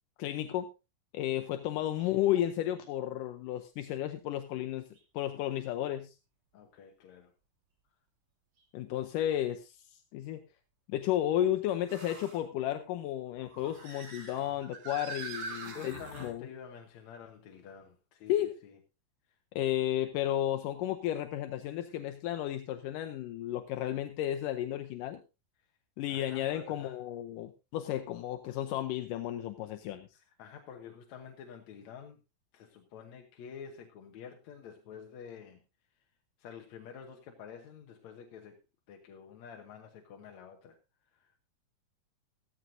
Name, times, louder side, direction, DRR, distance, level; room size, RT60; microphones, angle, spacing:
voice 1, 0.2-0.7 1.1-4.8 5.1-6.2 8.7-10.4 10.9-16.5 18.3-18.6 19.6-25.2 26.0-30.1, left 12 dB, 80° left, 7 dB, 2.4 m, -33 dB
sound 1, 2.0-2.2 2.8-2.9 4.9-5.0 8.6-8.7 11.9-12.4 13.4-16.3, right 3 dB, 65° right, 4.9 m, -44 dB
voice 2, 6.5-7.3 15.5-18.8 19.3-19.4 26.1-27.0 30.1-32.2 32.5-35.6 36.0-36.1 36.4-38.6 38.9-41.4, left 7 dB, 65° left, 3 dB, 2.3 m, -49 dB
15.5 x 14.5 x 2.7 m, 0.28 s
omnidirectional pair, 3.8 m